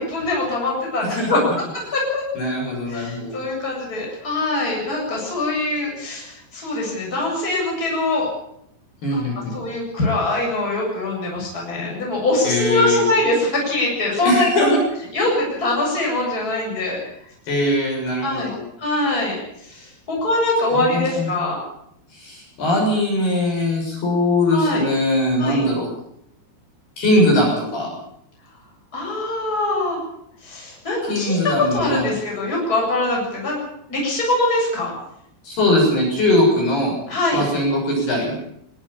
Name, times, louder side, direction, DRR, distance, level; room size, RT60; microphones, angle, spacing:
voice 1, 0.0-1.4 1.9-2.2 2.9-8.3 9.1-9.3 9.5-14.8 15.1-17.0 18.2-18.5 18.8-21.6 24.5-24.8 25.4-25.6 28.9-30.0 30.4-33.6 33.9-34.9 37.1-37.4, left 2 dB, 15° left, -2 dB, 8.2 m, -23 dB
voice 2, 2.4-3.4 9.0-9.6 12.4-13.0 14.2-14.7 17.5-18.6 20.7-21.3 22.1-25.9 27.0-27.9 31.0-32.1 35.4-36.9 37.3-38.4, left 1 dB, 50° left, -1 dB, 8.8 m, -20 dB
21.5 x 16.0 x 8.8 m, 0.75 s
omnidirectional pair, 6.0 m